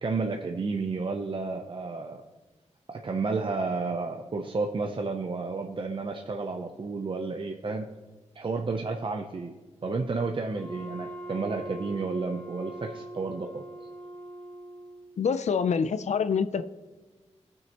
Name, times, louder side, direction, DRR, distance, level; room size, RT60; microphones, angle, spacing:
voice 1, 0.0-2.2 2.9-7.9 8.3-9.5 9.8-13.6, right 4 dB, 45° right, 3 dB, 0.6 m, -31 dB
Wind instrument woodwind instrument, 10.5-15.3, right 1 dB, 10° left, 1.3 m, -42 dB
voice 2, 15.2-16.6, left 6 dB, 70° left, 11 dB, 0.5 m, -26 dB
16.5 x 6.3 x 2.9 m, 1.2 s
wide cardioid pair, 80°, 12 cm